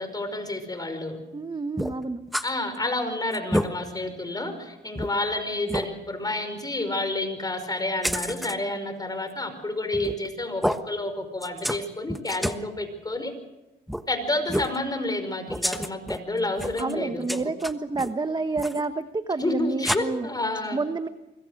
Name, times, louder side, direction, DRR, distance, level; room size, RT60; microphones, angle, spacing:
voice 1, 0.0-1.2 2.4-13.3 14.1-17.3 19.4-20.8, left 2 dB, 20° left, 8 dB, 5.2 m, -29 dB
voice 2, 1.3-2.2 16.8-20.3 20.7-21.1, right 3 dB, 20° right, 10 dB, 1.1 m, -29 dB
sound 1, 1.8-2.5 2.9-3.0 3.3-3.7 4.3-4.4 5.0-5.1 5.7-5.9 8.0-8.6 9.9-10.3 10.6-10.8 11.4-11.8 12.1-12.6 13.9-14.0 14.5-14.8 15.5-16.2 16.6-16.9 17.3-18.1 18.6-18.8 19.8-20.0, equal, ahead, 1.2 m, -28 dB
25.0 x 21.5 x 6.5 m, 0.99 s
cardioid pair, 90°, 20 cm